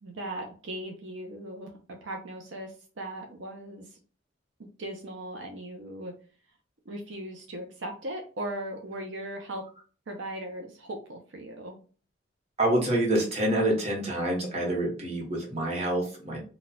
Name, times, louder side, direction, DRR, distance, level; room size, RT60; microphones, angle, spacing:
voice 1, 0.0-3.9 4.6-6.1 6.9-9.6 10.1-11.8, right 1 dB, 75° right, 2 dB, 0.6 m, -38 dB
voice 2, 12.6-16.4, right 1 dB, 35° right, -2 dB, 1.0 m, -27 dB
4.0 x 2.3 x 2.3 m, 0.37 s
head